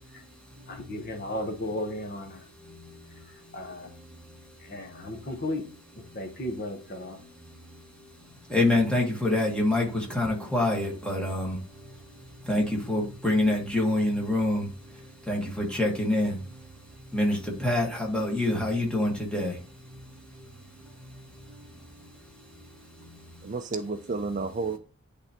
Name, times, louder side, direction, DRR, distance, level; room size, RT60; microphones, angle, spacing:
voice 1, 0.7-2.4 3.5-3.9 4.7-5.6 6.0-7.2, left 1 dB, 45° left, 1.0 m, -34 dB
voice 2, 8.5-11.6 12.4-14.7 15.3-16.4 17.1-19.6, left 1 dB, 5° left, 1.4 m, -26 dB
voice 3, 23.4-24.8, right 3 dB, 35° right, 0.4 m, -31 dB
10.0 x 3.4 x 2.9 m
head